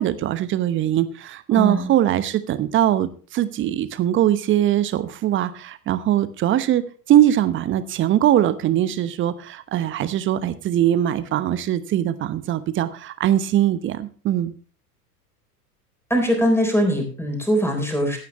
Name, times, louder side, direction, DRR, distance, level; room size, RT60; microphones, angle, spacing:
voice 1, 0.0-6.8 7.1-14.5, right 12 dB, 25° right, 14 dB, 0.9 m, -21 dB
voice 2, 1.5-1.9 16.1-18.2, equal, 5° left, 3 dB, 3.9 m, -21 dB
15.5 x 9.4 x 3.0 m, 0.40 s
figure-of-eight pair, 90°, 47 cm